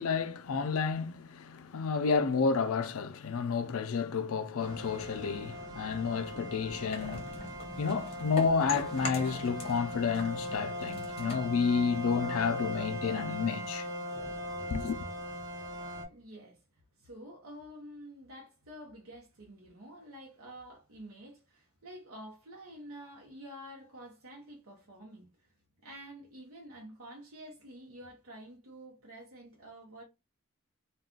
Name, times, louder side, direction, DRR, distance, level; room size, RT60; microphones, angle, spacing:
voice 1, 0.0-7.5 7.8-13.9 14.7-15.0, left 5 dB, 80° left, 0.4 m, -30 dB
sound 1, 4.6-16.0, equal, 20° right, 0.7 m, -39 dB
sound 2, 6.9-9.8 10.1-12.5, left 2 dB, 25° left, 0.7 m, -42 dB
voice 2, 15.5-16.6 17.0-25.5 25.8-30.0, right 1 dB, 80° right, 0.7 m, -49 dB
2.4 x 2.2 x 3.6 m
head